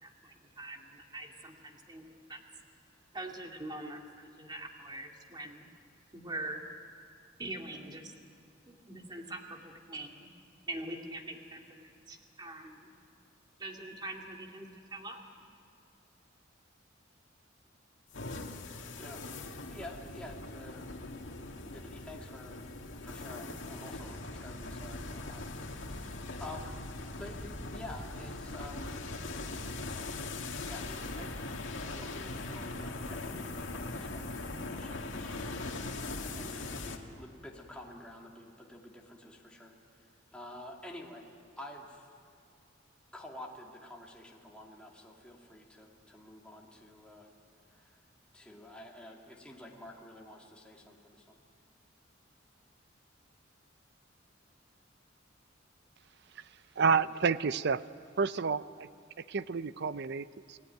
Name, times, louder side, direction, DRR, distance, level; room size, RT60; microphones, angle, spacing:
voice 1, 0.0-2.4 3.1-5.7 6.1-6.6 7.4-8.1 8.7-10.3 10.7-12.9 13.6-15.2, right 2 dB, 25° right, 2 dB, 2.4 m, -43 dB
sound 1, 18.1-37.0, left 2 dB, 75° left, 2.2 m, -41 dB
voice 2, 19.0-21.1 21.7-22.7 23.0-26.1 26.4-26.8 27.1-29.0 30.6-31.5 31.9-39.7 40.3-41.2 41.6-42.1 43.1-47.3 47.7-47.9 48.3-51.4, left 1 dB, 5° left, -2 dB, 2.6 m, -49 dB
voice 3, 56.8-57.8 58.2-58.9 59.2-60.6, right 5 dB, 60° right, 15 dB, 0.6 m, -30 dB
29.5 x 18.5 x 9.2 m, 2.3 s
head